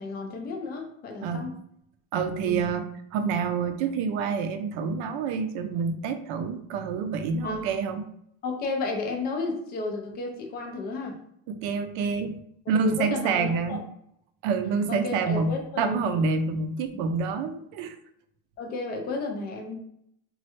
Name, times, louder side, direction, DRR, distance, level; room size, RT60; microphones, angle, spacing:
voice 1, 0.0-1.6 2.4-2.7 7.4-7.7 8.4-11.2 12.8-13.8 14.9-16.2 18.6-19.8, left 3 dB, 25° left, 2 dB, 0.3 m, -33 dB
voice 2, 2.1-2.9 3.1-8.1 11.5-12.4 12.7-13.9 14.4-18.0, right 5 dB, 65° right, 8 dB, 0.5 m, -27 dB
3.1 x 2.3 x 2.9 m, 0.72 s
cardioid pair, 150°, 47 cm